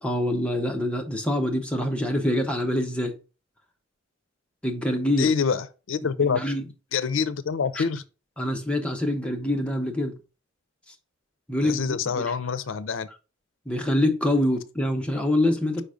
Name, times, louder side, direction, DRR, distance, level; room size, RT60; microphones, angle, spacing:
voice 1, 0.0-3.2 4.6-5.3 6.2-6.6 7.8-7.9 8.4-10.2 11.5-12.3 13.7-15.8, left 1 dB, 5° left, 1.0 m, -25 dB
voice 2, 5.2-6.4 6.9-8.0 11.6-13.1, left 6 dB, 80° left, 0.5 m, -26 dB
5.4 x 4.0 x 4.9 m
head